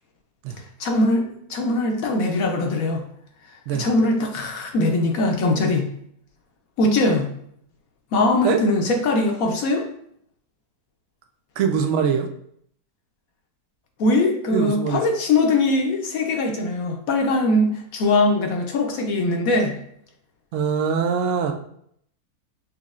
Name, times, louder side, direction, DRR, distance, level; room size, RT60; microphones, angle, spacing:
voice 1, 0.8-3.0 3.7-5.9 6.8-7.3 8.1-9.8 14.0-19.7, left 2 dB, 70° left, 2 dB, 1.1 m, -21 dB
voice 2, 11.6-12.3 14.5-15.0 20.5-21.5, right 6 dB, 65° right, 5 dB, 0.8 m, -22 dB
6.1 x 2.7 x 2.4 m, 0.68 s
omnidirectional pair, 1.6 m